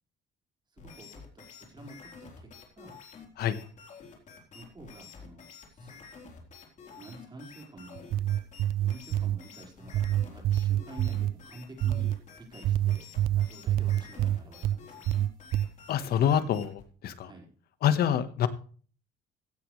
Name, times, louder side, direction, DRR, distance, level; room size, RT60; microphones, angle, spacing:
voice 1, 0.7-3.0 4.5-5.9 6.9-8.1 8.8-13.1 13.3-15.0 17.2-17.5, right 2 dB, 25° right, 1 dB, 4.9 m, -49 dB
sound 1, 0.8-16.9, left 5 dB, 45° left, 4.0 m, -49 dB
sound 2, 8.0-9.4 9.9-11.3 11.8-12.2 12.6-14.8 15.1-15.7, right 12 dB, 65° right, 0.5 m, -26 dB
voice 2, 15.9-17.3 17.8-18.5, left 9 dB, 65° left, 12 dB, 1.4 m, -26 dB
16.0 x 10.0 x 3.3 m, 0.41 s
cardioid pair, 110°, 17 cm